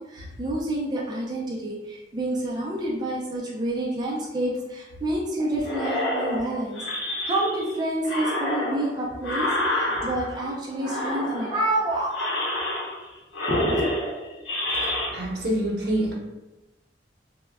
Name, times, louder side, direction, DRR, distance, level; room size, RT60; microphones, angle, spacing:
voice 1, 0.0-12.3 13.5-13.9, right 1 dB, 25° right, -4 dB, 0.4 m, -28 dB
sound 1, 5.6-7.7 8.0-10.4 10.8-11.7 12.1-13.1 13.3-15.1, left 1 dB, 85° left, 0.7 m, -28 dB
voice 2, 14.7-16.1, right 1 dB, 65° right, -3 dB, 0.7 m, -27 dB
2.1 x 2.1 x 3.4 m, 1.0 s
head